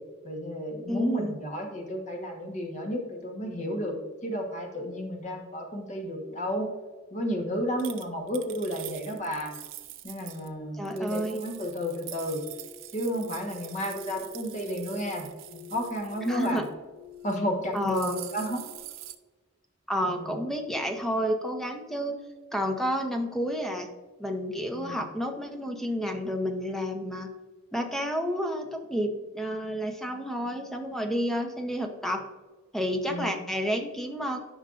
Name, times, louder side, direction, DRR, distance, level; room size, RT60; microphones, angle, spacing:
voice 1, 0.2-6.7 7.1-9.6 10.0-12.4 12.9-15.3 15.5-16.6 17.2-18.6 20.0-20.4 24.7-25.0 33.1-33.3, equal, 40° left, 3 dB, 1.2 m, -32 dB
voice 2, 0.9-1.3 10.8-11.4 16.2-16.6 17.7-18.2 19.9-22.2 22.5-23.9 24.2-27.3 27.7-32.2 32.7-34.4, equal, ahead, 3 dB, 0.8 m, -30 dB
sound 1, 7.8-10.5 10.9-16.7 17.1-17.4 17.6-19.2, right 14 dB, 85° right, 0.6 m, -44 dB
sound 2, 12.2-18.8, left 4 dB, 70° left, 1.1 m, -48 dB
12.5 x 5.4 x 2.5 m, 1.3 s
head